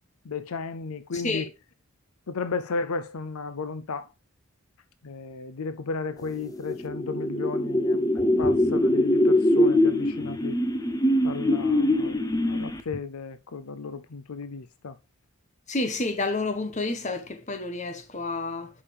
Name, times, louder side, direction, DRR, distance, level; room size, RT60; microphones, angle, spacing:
voice 1, 0.2-1.5 2.3-4.1 5.0-10.6 11.2-15.0, left 4 dB, 75° left, 0.6 m, -34 dB
sound 1, 6.5-13.0, left 1 dB, 15° left, 0.7 m, -23 dB
voice 2, 15.7-18.7, left 2 dB, 30° left, 1.2 m, -29 dB
11.0 x 5.5 x 3.4 m
head